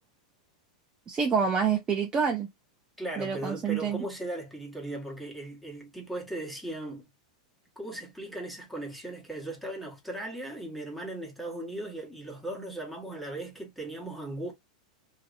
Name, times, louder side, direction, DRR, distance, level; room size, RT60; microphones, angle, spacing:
voice 1, 1.1-2.5 3.2-4.0, right 6 dB, 20° right, 0.5 m, -27 dB
voice 2, 3.0-7.1 7.7-14.5, right 1 dB, ahead, 1.2 m, -37 dB
2.9 x 2.7 x 2.5 m
hypercardioid pair, 130°, 4 cm